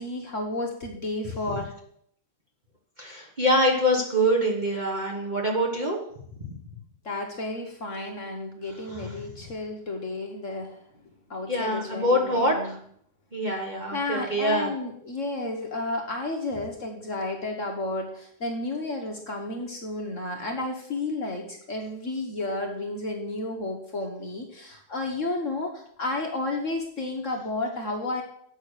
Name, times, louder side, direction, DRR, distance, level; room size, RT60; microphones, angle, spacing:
voice 1, 0.0-1.7 7.0-10.8 11.3-12.7 13.9-28.2, left 2 dB, 45° left, 2 dB, 1.4 m, -32 dB
voice 2, 3.0-6.0 8.9-9.2 11.5-12.8 13.3-14.7, equal, 25° right, -2 dB, 1.3 m, -25 dB
8.1 x 6.4 x 6.5 m, 0.66 s
omnidirectional pair, 2.1 m